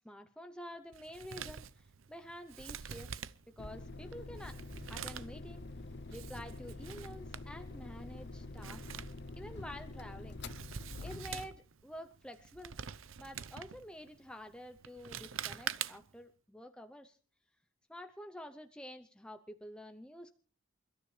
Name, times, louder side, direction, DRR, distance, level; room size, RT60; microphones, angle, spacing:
voice 1, 0.0-3.1 3.6-4.6 4.9-5.7 6.1-8.9 9.3-10.4 11.0-12.8 13.2-17.2 17.9-20.4, equal, 5° left, 6 dB, 0.7 m, -49 dB
Male speech man speaking, 0.9-16.2, right 8 dB, 75° right, 0.7 m, -46 dB
sound 1, 3.6-11.6, left 2 dB, 55° left, 0.7 m, -46 dB
28.5 x 13.0 x 3.3 m, 0.42 s
head